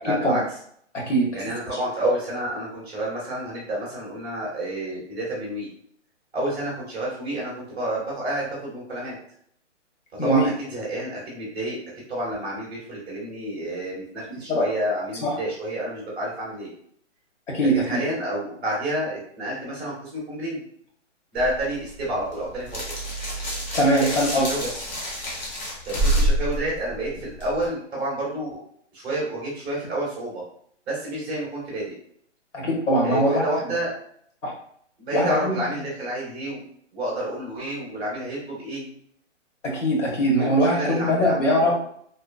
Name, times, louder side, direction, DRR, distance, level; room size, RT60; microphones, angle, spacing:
voice 1, 0.0-0.4 1.3-5.7 6.3-9.1 10.2-11.8 12.1-16.7 17.7-20.6 21.3-22.9 24.0-24.7 25.9-28.6 28.9-30.4 30.9-31.9 33.0-33.9 35.0-36.6 36.9-38.9 40.3-41.7, right 1 dB, 5° right, -5 dB, 0.6 m, -29 dB
voice 2, 0.9-1.5 10.2-10.5 14.5-14.7 15.2-15.3 17.5-18.0 23.7-24.5 32.5-33.4 34.4-34.5 35.1-35.6 39.6-41.7, equal, 70° left, -1 dB, 1.2 m, -21 dB
sound 1, 21.4-27.7, right 1 dB, 35° left, 0.7 m, -28 dB
2.8 x 2.0 x 2.5 m, 0.65 s
hypercardioid pair, 160°, 37 cm